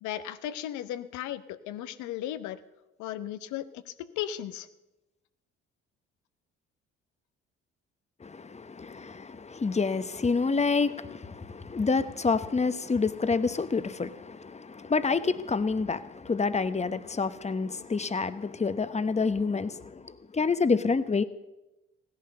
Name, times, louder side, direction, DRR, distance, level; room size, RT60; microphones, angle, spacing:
voice 1, 0.0-2.6 3.0-4.7, left 12 dB, 70° left, 13 dB, 1.0 m, -36 dB
voice 2, 8.2-21.2, left 4 dB, 20° left, 13 dB, 1.0 m, -28 dB
16.5 x 10.5 x 6.7 m, 1.0 s
hypercardioid pair, 55°, 30 cm